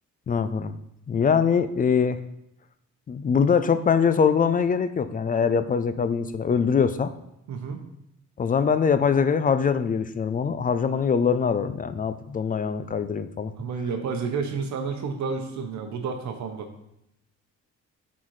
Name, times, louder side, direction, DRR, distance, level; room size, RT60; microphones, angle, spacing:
voice 1, 0.3-0.7 1.1-2.2 3.1-7.1 8.4-13.5, left 6 dB, 30° left, 11 dB, 0.4 m, -23 dB
voice 2, 7.5-7.8 13.6-16.7, right 5 dB, 65° right, 5 dB, 0.9 m, -30 dB
7.3 x 4.0 x 3.2 m, 0.81 s
cardioid pair, 90°, 30 cm